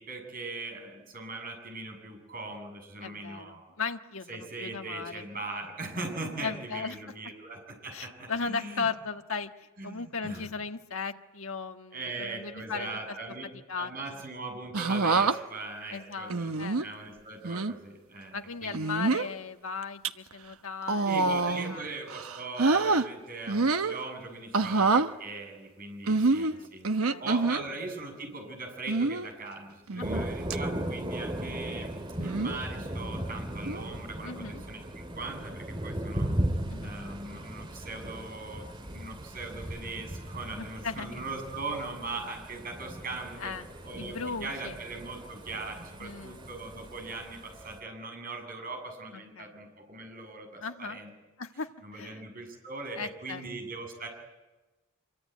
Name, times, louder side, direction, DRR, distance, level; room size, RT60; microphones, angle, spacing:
voice 1, 0.0-3.7 4.3-8.9 9.8-10.5 11.9-13.5 13.7-18.8 21.0-31.9 32.2-36.3 36.8-43.5 43.8-51.1 51.8-54.1, right 3 dB, 40° right, 3 dB, 7.8 m, -40 dB
voice 2, 3.0-5.2 6.4-7.0 7.9-12.9 13.7-14.2 15.9-16.8 18.3-21.3 21.7-21.9 24.6-24.8 26.1-27.3 30.0-30.3 33.0-33.2 34.2-34.6 36.7-37.0 40.5-41.2 43.4-43.7 44.0-44.8 46.0-46.5 49.4-49.5 50.6-51.0 51.4-52.2 52.9-53.4, left 5 dB, 70° left, 5 dB, 1.6 m, -37 dB
sound 1, 14.7-15.4 16.3-16.9 17.4-17.7 18.7-19.3 19.8-20.1 20.8-21.8 22.1-23.1 23.5-24.0 24.5-25.1 26.1-27.6 28.9-29.3 29.9-30.2 30.5-30.6 32.2-32.6 33.7-33.9, right 3 dB, 80° right, 1.1 m, -26 dB
Thunder, 30.0-47.8, right 1 dB, 25° right, 2.1 m, -37 dB
26.5 x 24.0 x 9.4 m, 1.1 s
head